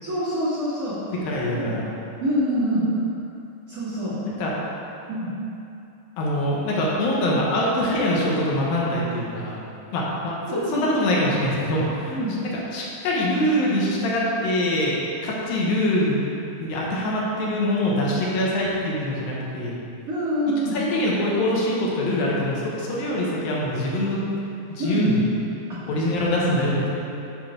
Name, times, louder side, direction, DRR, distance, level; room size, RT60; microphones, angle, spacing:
voice 1, 0.0-1.0 1.5-1.7 2.2-2.9 3.7-4.2 5.1-5.3 10.5-10.9 12.1-12.3 20.1-20.8 24.8-25.2, equal, 30° right, -11 dB, 1.9 m, -25 dB
voice 2, 1.1-1.9 4.3-4.5 6.2-9.6 9.9-12.2 12.7-16.2 16.6-19.8 20.7-24.2 24.7-25.2 25.9-26.9, left 1 dB, 85° left, -4 dB, 3.0 m, -24 dB
8.4 x 5.5 x 5.2 m, 2.8 s
omnidirectional pair, 4.1 m